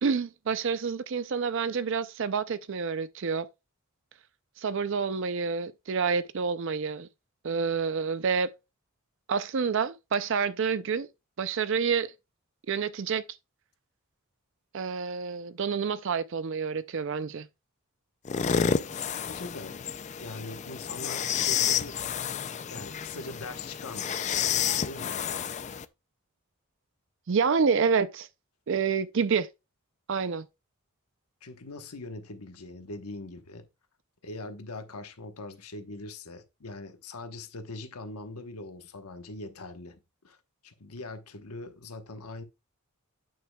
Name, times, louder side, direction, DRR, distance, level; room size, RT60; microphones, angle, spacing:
voice 1, 0.0-3.5 4.6-7.1 7.4-8.5 9.3-11.1 11.4-12.1 12.7-13.2 14.7-17.5 27.3-28.3 28.7-29.5 30.1-30.4, right 5 dB, 55° right, 0.4 m, -28 dB
sound 1, 18.3-25.9, left 7 dB, 30° left, 0.3 m, -30 dB
voice 2, 19.3-19.8 20.2-22.3 22.7-25.5 31.4-33.7 34.2-40.4 40.6-42.4, left 2 dB, 90° left, 1.1 m, -42 dB
8.7 x 6.5 x 2.3 m
head